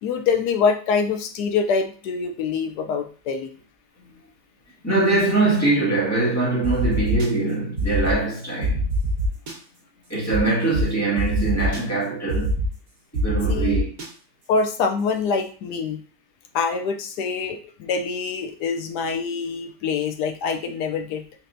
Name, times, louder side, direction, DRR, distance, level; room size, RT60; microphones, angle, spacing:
voice 1, 0.0-3.5 13.5-13.8 14.5-16.0 16.5-21.2, left 5 dB, 80° left, 1.1 m, -25 dB
voice 2, 4.8-8.9 10.1-12.5 13.1-13.9, right 3 dB, 10° left, 1.7 m, -22 dB
sound 1, 6.6-7.3 7.8-8.1 8.6-9.5 10.3-10.4 10.7-10.8 11.2-11.8 12.3-12.7 13.1-14.1, right 2 dB, 60° right, 1.3 m, -24 dB
4.2 x 3.3 x 2.6 m
omnidirectional pair, 1.8 m